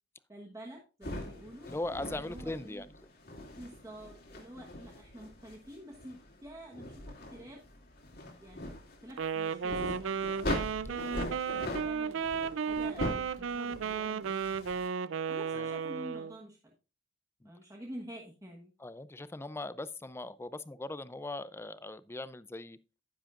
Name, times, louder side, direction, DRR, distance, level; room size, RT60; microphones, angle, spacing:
voice 1, 0.3-1.7 2.1-2.8 3.5-7.6 8.4-8.7 9.0-10.3 10.9-14.6 15.3-16.7 17.4-18.7, equal, 15° right, 1.2 m, -48 dB
sound 1, 1.0-14.9, left 1 dB, 55° left, 2.5 m, -41 dB
voice 2, 1.7-2.9 15.5-15.7 17.4-17.5 18.8-22.8, left 2 dB, 15° left, 0.4 m, -40 dB
Wind instrument woodwind instrument, 9.1-16.4, right 6 dB, 90° right, 0.4 m, -34 dB
10.5 x 10.0 x 2.4 m
head